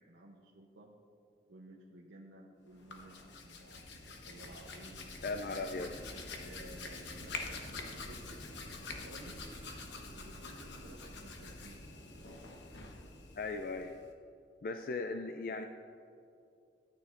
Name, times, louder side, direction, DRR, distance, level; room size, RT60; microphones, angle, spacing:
voice 1, 0.1-0.9 1.5-5.0 5.5-8.5 9.0-9.4 10.1-11.8, right 2 dB, 85° right, -2 dB, 0.8 m, -55 dB
Hands, 2.7-14.1, left 3 dB, 80° left, 1.0 m, -46 dB
voice 2, 5.2-5.9 13.4-14.0 14.6-15.6, left 3 dB, 50° left, 6 dB, 0.3 m, -37 dB
13.0 x 9.2 x 2.5 m, 2.6 s
head